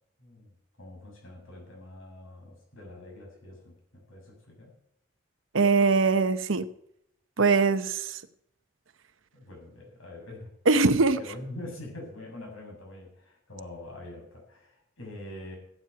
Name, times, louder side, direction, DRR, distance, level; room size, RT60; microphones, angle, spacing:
voice 1, 0.8-4.7 9.3-10.5 11.0-15.6, left 1 dB, 85° left, 0 dB, 7.4 m, -44 dB
voice 2, 5.5-6.7 7.4-8.2 10.7-11.2, right 4 dB, 70° right, 12 dB, 0.9 m, -22 dB
15.0 x 9.2 x 5.8 m, 0.75 s
head